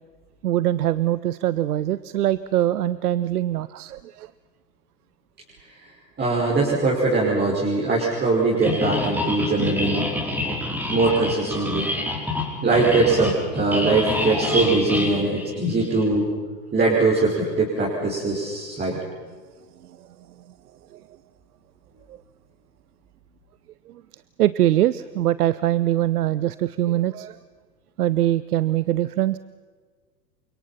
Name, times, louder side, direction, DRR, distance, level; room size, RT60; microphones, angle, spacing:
voice 1, 0.4-4.3 23.9-24.0 24.4-27.4 28.0-29.4, right 13 dB, 65° right, 17 dB, 0.8 m, -22 dB
voice 2, 6.2-10.1 10.9-11.9 12.6-16.3 16.7-19.0, right 3 dB, 20° right, -4 dB, 5.6 m, -21 dB
sound 1, 8.6-16.1, left 2 dB, 5° right, 5.3 m, -27 dB
29.5 x 25.5 x 5.9 m, 1.5 s
figure-of-eight pair, 95°, 50 cm